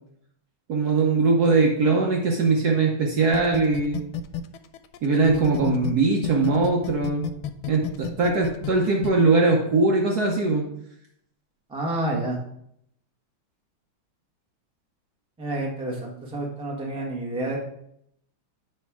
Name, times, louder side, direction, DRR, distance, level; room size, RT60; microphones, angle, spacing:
voice 1, 0.7-4.0 5.0-7.3 7.7-10.6, right 3 dB, 60° right, 0 dB, 1.2 m, -21 dB
sound 1, 3.3-5.9 6.2-9.1, left 11 dB, 80° left, 1.4 m, -30 dB
voice 2, 11.7-12.4 15.4-17.6, right 1 dB, 5° right, -1 dB, 0.8 m, -29 dB
9.7 x 3.4 x 4.7 m, 0.73 s
omnidirectional pair, 2.3 m